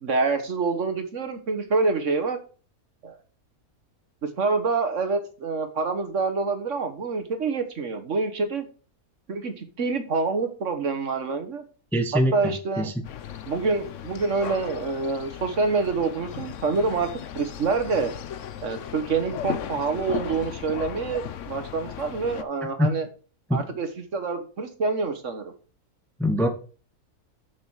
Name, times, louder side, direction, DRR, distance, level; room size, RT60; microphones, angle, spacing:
voice 1, 0.0-2.4 3.0-3.2 4.2-8.7 9.3-11.6 12.3-12.9 13.5-17.1 17.3-18.1 18.6-23.1 23.5-23.9 24.1-25.5, right 4 dB, 55° right, 8 dB, 1.5 m, -26 dB
voice 2, 11.9-12.9 22.8-22.9 23.5-23.6 26.2-26.5, equal, ahead, 6 dB, 0.8 m, -23 dB
sound 1, 13.0-22.4, left 9 dB, 60° left, 1.0 m, -36 dB
7.4 x 6.2 x 6.2 m, 0.39 s
omnidirectional pair, 1.6 m